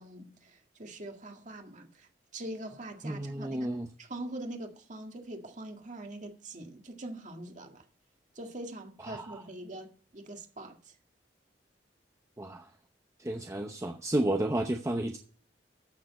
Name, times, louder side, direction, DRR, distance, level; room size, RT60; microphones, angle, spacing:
voice 1, 0.0-7.8 8.4-10.8, right 1 dB, 45° right, 1.8 m, -43 dB
voice 2, 3.0-3.9 9.0-9.4 12.4-12.7 13.2-15.2, right 1 dB, 15° right, 0.8 m, -32 dB
14.0 x 6.9 x 4.2 m
head